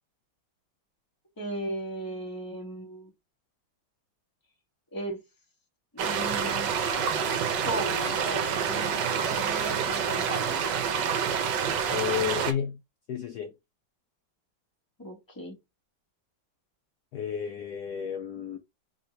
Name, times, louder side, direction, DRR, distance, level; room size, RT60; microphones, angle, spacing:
voice 1, 1.4-3.1 4.9-5.2 5.9-6.7 7.6-10.6 15.0-15.6, right 1 dB, 15° left, 1.1 m, -36 dB
sound 1, 6.0-12.5, right 7 dB, 65° right, 1.3 m, -28 dB
voice 2, 11.9-12.8 13.1-13.5 17.1-18.6, left 8 dB, 80° left, 0.8 m, -31 dB
3.5 x 2.6 x 4.4 m
omnidirectional pair, 2.2 m